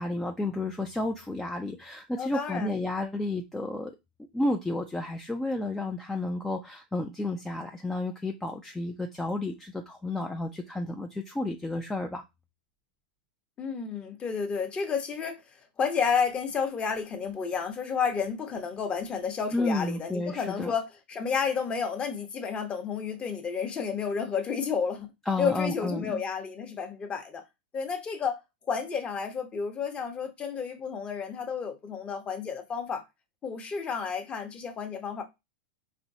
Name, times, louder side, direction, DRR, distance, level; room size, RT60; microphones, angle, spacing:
voice 1, 0.0-3.9 4.3-12.2 19.5-20.7 25.3-26.2, left 2 dB, 5° left, 0.4 m, -31 dB
voice 2, 2.2-2.8 13.6-15.4 15.8-25.1 25.4-27.4 27.7-28.4 28.7-33.0 33.4-35.2, left 6 dB, 20° left, 0.8 m, -31 dB
4.3 x 3.0 x 2.7 m
hypercardioid pair, 130°, 5 cm